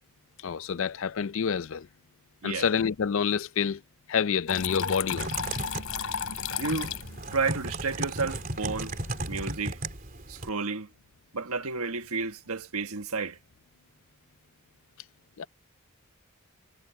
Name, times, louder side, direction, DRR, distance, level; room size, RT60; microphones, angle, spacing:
voice 1, 0.4-1.9 2.4-3.8 4.1-5.3 15.4-15.5, left 7 dB, 60° left, 0.4 m, -28 dB
Water tap faucet / Trickle dribble, 4.5-9.5, left 6 dB, 80° left, 3.5 m, -36 dB
Typing, 5.1-10.5, right 2 dB, 40° right, 3.6 m, -35 dB
voice 2, 6.6-6.9 7.3-8.9 9.3-9.8 10.3-10.9 11.3-13.4, right 4 dB, 80° right, 1.4 m, -31 dB
head